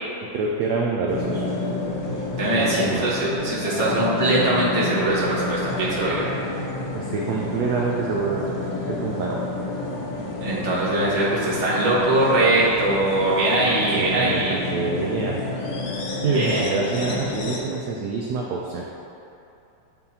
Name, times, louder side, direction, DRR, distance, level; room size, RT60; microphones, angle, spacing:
voice 1, 0.3-1.4 2.5-3.1 6.9-8.5 8.9-9.4 13.9-15.4 16.2-18.8, right 4 dB, 70° right, -2 dB, 1.0 m, -26 dB
sound 1, 1.1-17.6, left 2 dB, 90° left, 1.5 m, -30 dB
voice 2, 2.4-6.3 10.4-14.6 16.3-16.6 17.0-17.2, right 2 dB, 25° right, -10 dB, 1.4 m, -22 dB
9.4 x 3.6 x 2.8 m, 2.8 s
omnidirectional pair, 2.0 m